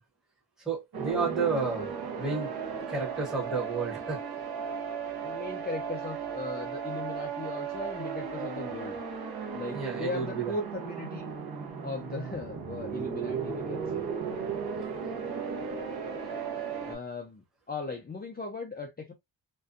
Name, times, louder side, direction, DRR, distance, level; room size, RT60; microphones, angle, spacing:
voice 1, 0.7-1.9 2.2-2.5 2.9-4.2 9.7-10.3, right 4 dB, ahead, 0.8 m, -31 dB
sound 1, 0.9-17.0, right 6 dB, 60° right, 0.7 m, -35 dB
voice 2, 5.2-9.0 9.5-11.3 11.8-14.0 16.8-19.1, left 3 dB, 25° left, 0.4 m, -38 dB
2.6 x 2.2 x 2.4 m
wide cardioid pair, 160°, 43 cm